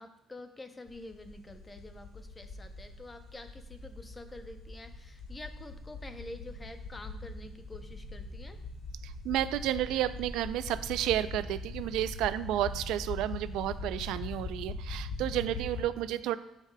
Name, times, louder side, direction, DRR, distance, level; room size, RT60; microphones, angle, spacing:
voice 1, 0.0-8.6, left 2 dB, 15° left, 7 dB, 0.5 m, -47 dB
sound 1, 0.9-15.8, left 3 dB, 50° left, 1.2 m, -42 dB
voice 2, 9.0-16.4, right 12 dB, 85° right, 14 dB, 0.3 m, -31 dB
12.0 x 4.8 x 2.2 m, 0.87 s
cardioid pair, 155°, 0 cm